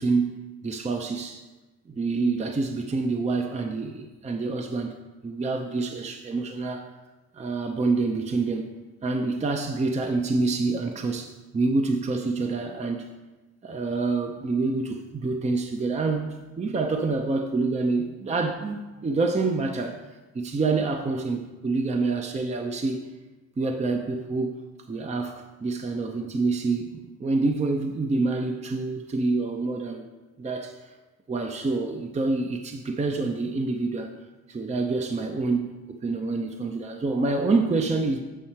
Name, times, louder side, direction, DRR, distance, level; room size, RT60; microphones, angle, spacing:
voice 1, 0.0-1.4 1.9-6.9 7.3-8.8 9.0-13.1 13.6-20.0 20.3-23.0 23.6-24.6 24.9-30.1 30.4-30.8 31.3-34.1 34.5-38.2, right 3 dB, 20° right, 4 dB, 0.6 m, -27 dB
7.5 x 5.4 x 4.3 m, 1.1 s
cardioid pair, 90°, 30 cm